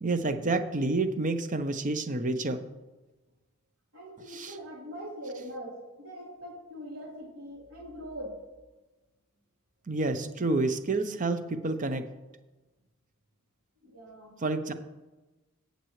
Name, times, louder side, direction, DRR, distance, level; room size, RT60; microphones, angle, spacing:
voice 1, 0.0-2.6 4.3-4.6 9.9-12.1 14.4-14.7, right 2 dB, 35° right, 9 dB, 0.7 m, -29 dB
voice 2, 3.9-8.4 13.8-14.4, equal, 75° right, -5 dB, 3.5 m, -42 dB
18.0 x 6.7 x 3.2 m, 1.1 s
head